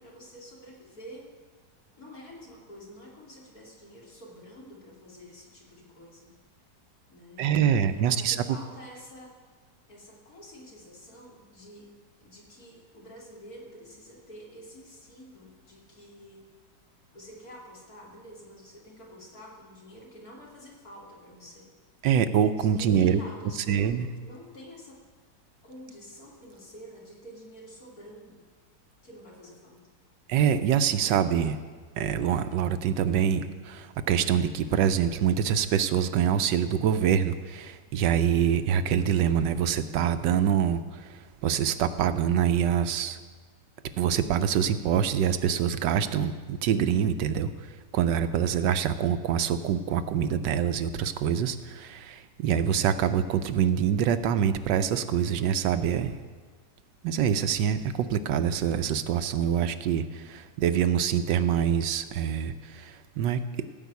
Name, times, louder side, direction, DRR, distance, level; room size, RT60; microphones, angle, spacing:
voice 1, 0.0-1.3 2.0-6.4 7.1-9.4 9.9-11.9 12.2-16.5 17.1-21.7 22.6-25.0 25.6-28.4 29.0-29.8, equal, 55° left, -4 dB, 3.3 m, -48 dB
voice 2, 7.4-8.4 22.0-23.2 23.7-24.1 30.3-31.6 32.0-43.2 44.0-56.2 57.0-63.4, right 8 dB, 80° right, 10 dB, 1.3 m, -25 dB
16.0 x 5.6 x 8.2 m, 1.5 s
omnidirectional pair, 1.9 m